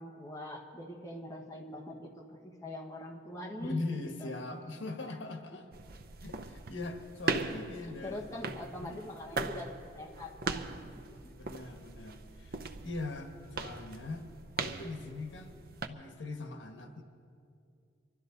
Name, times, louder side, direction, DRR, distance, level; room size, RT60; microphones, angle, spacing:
voice 1, 0.0-3.8 4.2-4.3 7.8-10.7 11.0-11.3, left 1 dB, 15° left, -1 dB, 1.4 m, -43 dB
voice 2, 3.6-5.7 6.2-8.2 8.8-9.0 11.3-14.2 14.5-15.6 15.9-17.0, left 2 dB, 85° left, 4 dB, 1.4 m, -41 dB
sound 1, 5.7-15.9, right 4 dB, 50° right, 0.7 m, -40 dB
25.0 x 12.5 x 4.0 m, 2.4 s
head